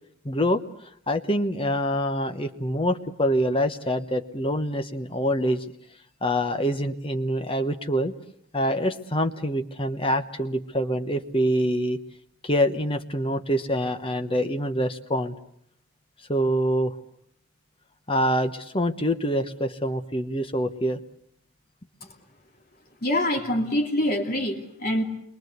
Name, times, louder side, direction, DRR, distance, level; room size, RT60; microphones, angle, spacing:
voice 1, 0.2-0.6 1.1-5.6 6.2-8.1 8.5-12.0 12.4-15.3 16.3-16.9 18.1-21.0, equal, 25° left, 8 dB, 1.1 m, -25 dB
voice 2, 23.0-25.0, left 1 dB, 45° left, 3 dB, 3.0 m, -25 dB
28.5 x 23.0 x 8.1 m, 0.68 s
head